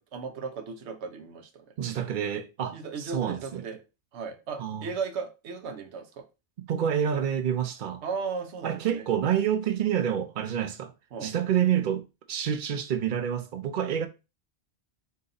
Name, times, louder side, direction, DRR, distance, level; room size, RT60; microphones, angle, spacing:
voice 1, 0.0-1.6 2.7-3.8 4.1-6.2 8.0-9.1 11.1-11.3, right 5 dB, 80° right, 1.0 m, -36 dB
voice 2, 1.8-3.6 4.6-4.9 6.6-8.0 8.6-10.9 11.2-14.1, right 9 dB, 55° right, 0.7 m, -28 dB
4.0 x 2.8 x 3.8 m
omnidirectional pair, 1.1 m